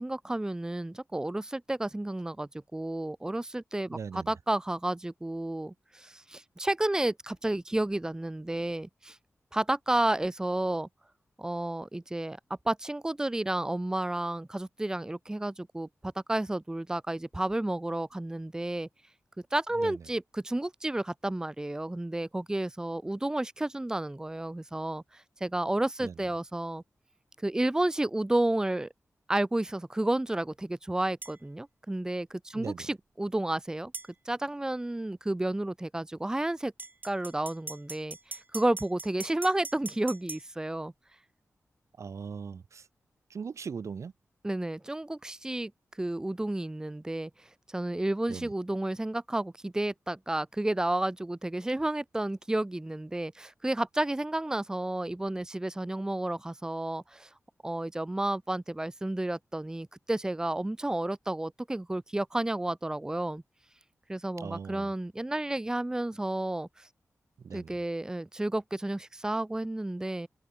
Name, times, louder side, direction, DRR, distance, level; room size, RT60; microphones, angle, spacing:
voice 1, 0.0-9.2 9.5-10.9 11.4-12.4 12.7-18.9 19.5-26.8 27.4-28.9 29.3-33.9 34.3-36.7 37.0-38.2 38.5-40.9 44.4-45.7 46.0-47.3 47.7-57.3 57.6-63.4 64.1-66.9 67.5-70.3, right 1 dB, 10° right, 2.1 m, -31 dB
voice 2, 3.9-4.3 19.8-20.0 26.0-26.1 32.5-32.9 42.0-42.9 43.3-44.1 48.3-48.5 64.4-64.9 67.4-67.7, right 6 dB, 65° right, 3.6 m, -39 dB
sound 1, 31.2-31.4 33.9-34.1 36.8-40.4, right 3 dB, 35° right, 6.2 m, -41 dB
wide cardioid pair, 175°, 5 cm